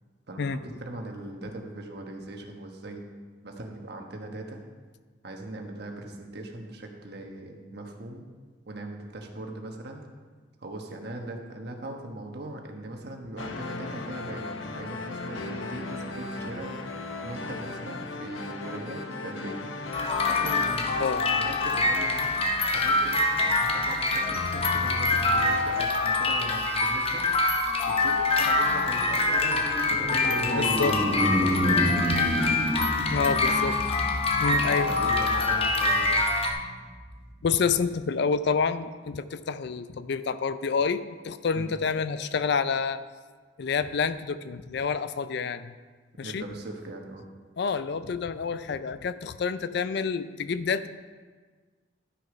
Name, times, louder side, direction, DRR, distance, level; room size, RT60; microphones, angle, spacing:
voice 1, 0.3-3.1 3.4-4.6 5.2-8.3 8.7-10.0 10.6-16.7 17.2-19.6 20.3-22.4 22.7-27.2 27.9-29.6 29.9-32.0 33.4-33.6 34.9-36.2 41.5-41.8 46.2-47.2, right 1 dB, 60° right, 2 dB, 1.2 m, -40 dB
sound 1, 13.4-25.8, left 2 dB, 85° left, 0.8 m, -37 dB
sound 2, 19.9-36.5, left 3 dB, 30° left, 0.8 m, -25 dB
sound 3, 27.8-37.4, right 1 dB, 20° right, 1.2 m, -31 dB
voice 2, 30.6-30.9 33.1-33.7 34.4-34.9 35.6-35.7 37.4-43.0 43.6-45.7 46.2-46.4 47.6-50.9, left 5 dB, 60° left, 13 dB, 0.4 m, -28 dB
11.5 x 6.4 x 5.0 m, 1.5 s
head